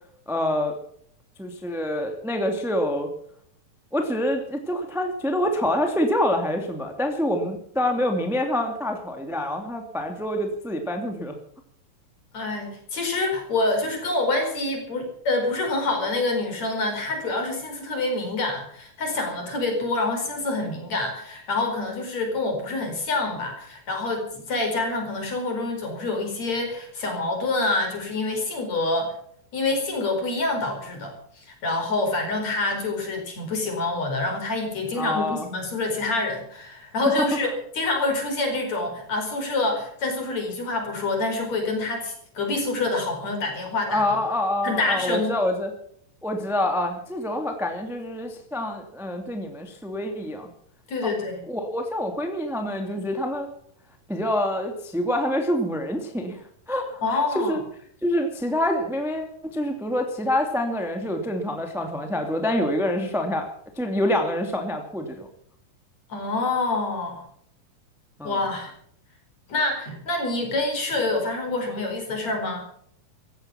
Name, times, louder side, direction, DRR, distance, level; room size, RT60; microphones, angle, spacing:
voice 1, 0.3-0.8 1.4-3.1 3.9-11.3 35.0-35.5 43.9-45.7 46.2-50.5 51.0-51.1 51.5-53.5 54.1-56.4 56.7-57.6 58.0-59.3 59.5-63.5 63.8-65.3 68.2-68.4, left 1 dB, ahead, 4 dB, 1.9 m, -26 dB
voice 2, 12.3-29.1 29.5-44.0 44.6-45.3 50.9-51.4 57.0-57.6 66.1-67.3 68.2-68.7 69.5-72.7, left 2 dB, 50° left, 3 dB, 5.8 m, -26 dB
16.0 x 14.5 x 6.0 m, 0.65 s
omnidirectional pair, 4.0 m